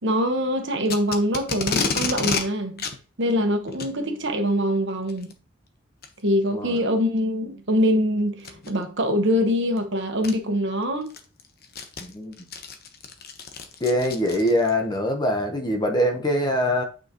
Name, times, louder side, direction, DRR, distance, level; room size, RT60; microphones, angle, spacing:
voice 1, 0.0-2.9 3.2-5.3 6.2-11.1, equal, 60° right, 1.3 m, -24 dB
Packing tape duct tape, 0.9-2.4 2.8-3.0 3.7-3.9 5.1-5.3 6.0-6.1 6.8-6.9 8.4-8.7 9.8-9.9 10.2-10.3 10.8-14.7, left 5 dB, 50° left, 1.0 m, -29 dB
voice 2, 12.0-12.5 13.8-16.8, equal, 20° left, 1.0 m, -23 dB
9.1 x 5.2 x 3.0 m
head